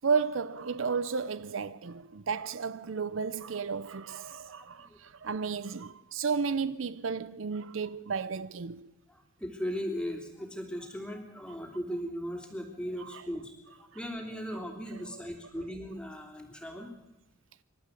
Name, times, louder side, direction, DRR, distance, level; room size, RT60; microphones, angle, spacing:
voice 1, 0.0-8.9 13.1-13.2, right 5 dB, 75° right, 0.6 m, -33 dB
voice 2, 4.6-5.0 9.1-13.5 13.8-16.9, equal, 5° left, 3.1 m, -38 dB
27.0 x 12.5 x 8.4 m
head